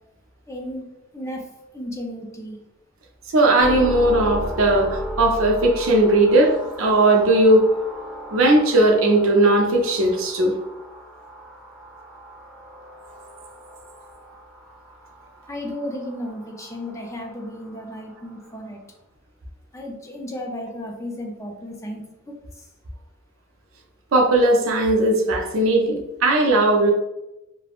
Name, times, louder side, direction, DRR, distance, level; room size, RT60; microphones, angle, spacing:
voice 1, 0.5-0.9 1.1-2.6 15.5-18.8 19.7-22.7, left 1 dB, 15° left, 1 dB, 0.4 m, -34 dB
voice 2, 3.3-7.6 8.3-10.6 24.1-26.9, right 1 dB, 75° right, 2 dB, 0.5 m, -18 dB
sound 1, 3.6-18.7, equal, 5° right, 0.8 m, -36 dB
3.3 x 2.0 x 2.3 m, 0.95 s
head